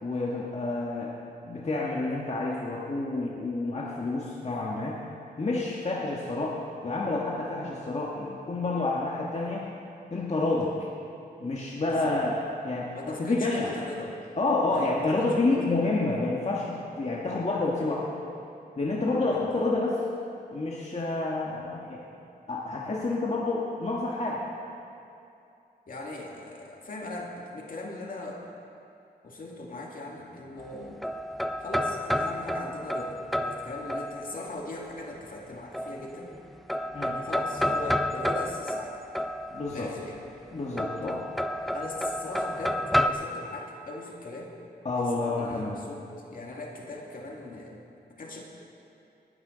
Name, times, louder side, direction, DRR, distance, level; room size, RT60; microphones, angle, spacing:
voice 1, 0.0-1.1 1.4-5.0 5.4-6.6 6.8-9.7 10.1-10.9 11.4-12.3 12.6-13.7 14.4-18.1 18.8-20.0 20.5-22.0 22.5-24.4 36.9-37.2 39.5-39.9 40.5-41.2 44.8-45.8, left 2 dB, 40° left, -4 dB, 1.5 m, -29 dB
voice 2, 12.9-14.2 14.7-15.8 19.3-19.4 25.9-28.4 29.2-31.1 31.6-36.3 37.0-39.0 39.7-40.2 41.7-44.5 45.1-46.0 46.3-47.8 48.2-48.4, left 2 dB, 55° left, -1 dB, 2.2 m, -39 dB
sound 1, 30.6-34.6 35.7-36.4 36.7-39.9 40.8-43.1, equal, ahead, 0.5 m, -30 dB
19.5 x 12.0 x 3.9 m, 2.6 s
wide cardioid pair, 95°, 17 cm